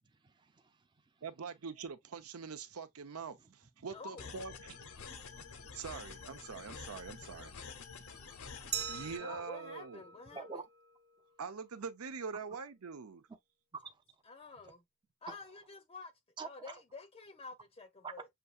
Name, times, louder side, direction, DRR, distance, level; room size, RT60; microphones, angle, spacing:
voice 1, 0.0-1.2 3.4-3.5 3.9-4.0 4.2-4.4 5.1-5.8 6.6-6.8 7.3-7.4 8.1-9.1 10.3-10.6 13.7-14.7 15.3-15.6 16.4-16.8 18.0-18.1, right 4 dB, 20° right, 0.5 m, -50 dB
voice 2, 1.2-5.3 5.7-7.5 8.0-10.0 11.4-13.2, right 5 dB, 90° right, 0.7 m, -44 dB
voice 3, 3.9-4.4 9.2-10.4 14.3-14.8 15.2-16.1 16.4-18.3, left 4 dB, 25° left, 0.5 m, -49 dB
sound 1, 4.2-9.2, left 5 dB, 85° left, 0.8 m, -48 dB
Glass, 8.7-11.4, right 7 dB, 50° right, 0.8 m, -43 dB
6.7 x 2.7 x 2.3 m
head